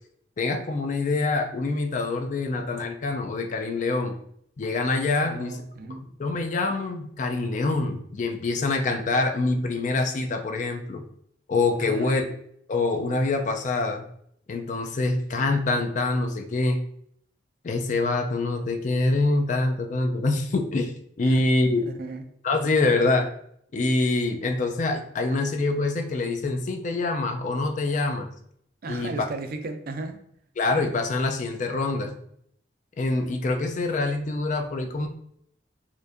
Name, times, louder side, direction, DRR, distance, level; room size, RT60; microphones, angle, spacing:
voice 1, 0.4-4.1 4.6-5.6 5.9-11.0 11.5-12.2 12.7-14.0 14.5-16.8 17.6-20.9 21.2-21.8 22.4-23.3 23.7-28.3 28.9-29.1 30.6-32.1 33.0-35.1, left 3 dB, 45° left, 5 dB, 0.4 m, -25 dB
voice 2, 5.2-6.0 11.8-12.3 21.2-22.2 28.8-30.2, right 3 dB, 55° right, 6 dB, 0.4 m, -36 dB
4.3 x 2.5 x 2.5 m, 0.68 s
head